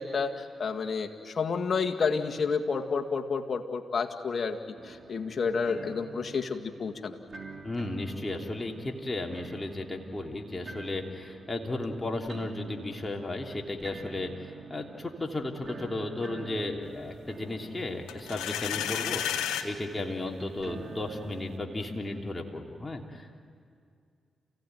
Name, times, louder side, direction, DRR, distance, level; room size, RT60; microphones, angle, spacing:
voice 1, 0.0-7.2, left 5 dB, 55° left, 4 dB, 2.0 m, -30 dB
sound 1, 4.8-22.3, right 4 dB, 50° right, 3.0 m, -47 dB
voice 2, 7.6-23.4, left 2 dB, 25° left, 1 dB, 3.1 m, -35 dB
sound 2, 18.1-19.7, left 10 dB, 90° left, 1.2 m, -31 dB
29.0 x 16.5 x 9.4 m, 2.3 s
supercardioid pair, 45°, 0 cm